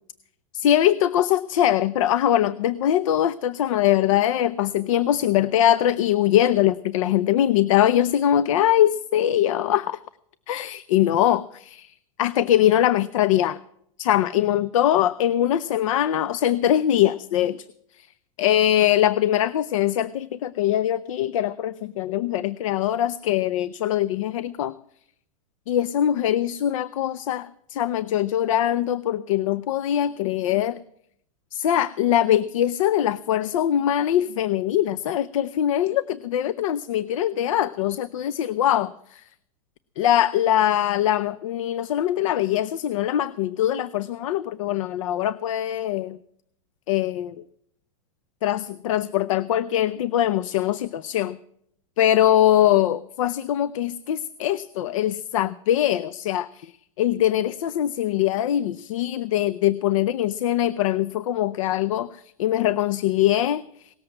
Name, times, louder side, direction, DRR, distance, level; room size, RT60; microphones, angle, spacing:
voice 1, 0.5-10.0 10.5-13.6 14.0-17.6 18.0-18.1 18.4-24.7 25.7-30.8 31.5-39.2 40.0-46.2 46.9-47.4 48.4-51.4 52.0-56.7 57.0-63.6, left 11 dB, 65° left, 17 dB, 0.6 m, -22 dB
18.5 x 7.8 x 7.8 m, 0.69 s
supercardioid pair, 155°, 18 cm